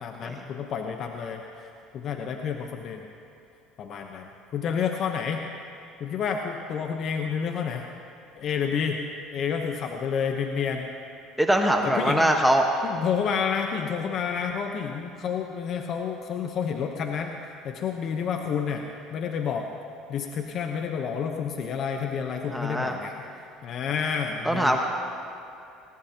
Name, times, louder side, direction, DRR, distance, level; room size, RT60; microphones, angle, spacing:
voice 1, 0.0-3.1 3.8-5.4 6.0-7.8 8.4-9.0 9.3-10.9 11.8-12.3 12.8-17.4 17.6-18.8 19.1-19.7 20.1-23.1 23.6-24.8, left 7 dB, 55° left, 4 dB, 1.0 m, -29 dB
voice 2, 11.4-12.7 22.5-23.0 24.4-24.8, right 1 dB, 5° right, 2 dB, 1.3 m, -22 dB
19.5 x 18.0 x 2.9 m, 2.6 s
supercardioid pair, 80°, 0 cm